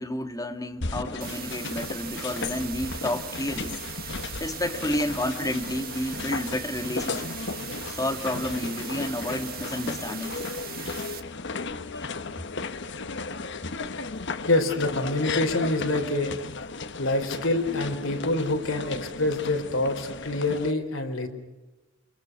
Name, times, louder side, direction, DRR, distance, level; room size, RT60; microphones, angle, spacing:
voice 1, 0.0-4.1 4.4-7.3 7.9-10.4 11.9-12.1, left 1 dB, 20° left, 6 dB, 2.4 m, -31 dB
sound 1, 0.8-20.7, left 4 dB, 60° left, 1.2 m, -35 dB
sound 2, 1.2-11.2, right 10 dB, 50° right, 1.7 m, -40 dB
voice 2, 14.5-16.4 17.0-21.3, left 2 dB, 80° left, 4 dB, 4.4 m, -26 dB
29.0 x 26.5 x 6.3 m, 1.1 s
head